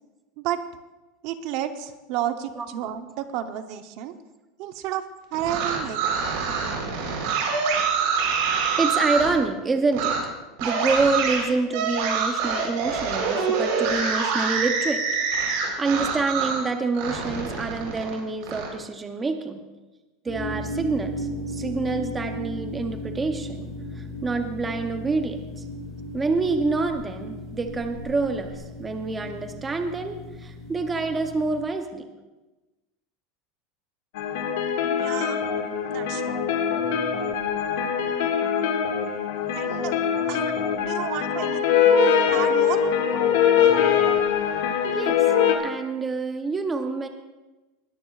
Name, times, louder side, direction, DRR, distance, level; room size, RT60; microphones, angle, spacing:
voice 1, 1.2-4.1 4.6-5.0 5.3-6.1 34.9-35.4 35.9-36.4 39.5-39.9 40.3-40.5 40.8-41.6 42.3-42.9, right 11 dB, 45° right, 9 dB, 0.7 m, -31 dB
sound 1, 5.3-9.3 9.9-10.2 10.6-16.6 16.9-18.7, right 5 dB, 60° right, 3.8 m, -25 dB
voice 2, 8.8-10.2 10.6-15.0 15.8-19.6 20.2-23.7 24.0-25.5 26.1-32.1 41.3-41.5 44.9-45.2 45.6-47.1, right 3 dB, 10° right, 6 dB, 0.6 m, -27 dB
sound 2, 20.3-31.6, left 1 dB, 20° left, 4.7 m, -36 dB
sound 3, 34.2-45.6, left 8 dB, 75° left, 1.8 m, -22 dB
20.0 x 13.5 x 2.4 m, 1.1 s
supercardioid pair, 175°, 0 cm